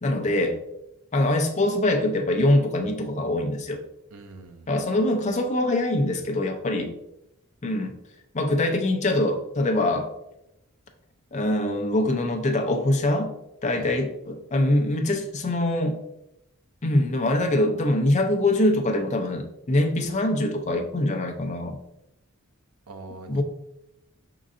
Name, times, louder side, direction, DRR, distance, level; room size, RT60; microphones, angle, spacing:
voice 1, 0.0-0.6 1.1-3.8 4.7-6.9 7.6-7.9 8.3-10.1 11.3-13.3 13.6-16.0 16.8-21.8 23.3-23.4, left 1 dB, 30° left, 4 dB, 0.5 m, -23 dB
voice 2, 4.1-4.8 13.8-13.9 22.9-23.4, right 3 dB, 75° right, 6 dB, 0.6 m, -43 dB
5.2 x 3.8 x 2.5 m, 0.87 s
head